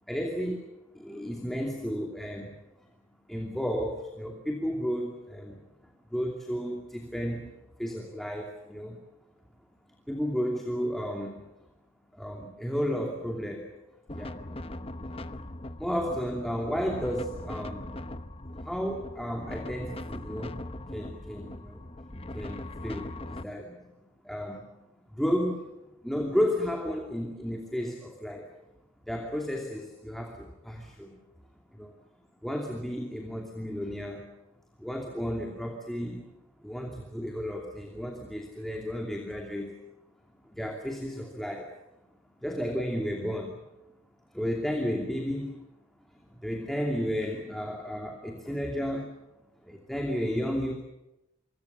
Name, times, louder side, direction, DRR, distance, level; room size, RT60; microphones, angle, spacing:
voice 1, 0.1-2.5 3.3-5.6 6.1-7.5 7.8-9.0 10.1-11.5 12.1-13.7 14.1-14.4 15.8-17.9 18.6-20.6 20.9-21.8 22.3-23.8 24.2-24.7 25.1-25.7 26.0-28.5 29.1-31.2 31.7-32.0 32.4-34.3 34.8-36.2 36.6-39.8 40.5-41.7 42.4-43.6 44.3-45.6 46.3-49.1 49.6-50.7, equal, ahead, 1 dB, 2.7 m, -33 dB
sound 1, 14.1-23.4, left 1 dB, 30° left, 1.0 m, -40 dB
26.5 x 24.5 x 7.0 m, 0.92 s
head